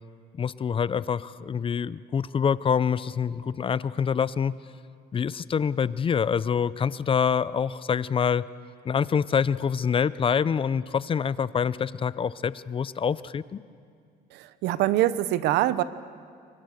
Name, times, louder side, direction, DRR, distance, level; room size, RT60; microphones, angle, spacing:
voice 1, 0.3-4.5 5.1-8.5 8.8-13.6, left 7 dB, 30° left, 18 dB, 0.6 m, -26 dB
voice 2, 14.3-15.8, right 14 dB, 85° right, 16 dB, 0.9 m, -24 dB
28.0 x 24.0 x 6.5 m, 2.3 s
cardioid pair, 110°, 17 cm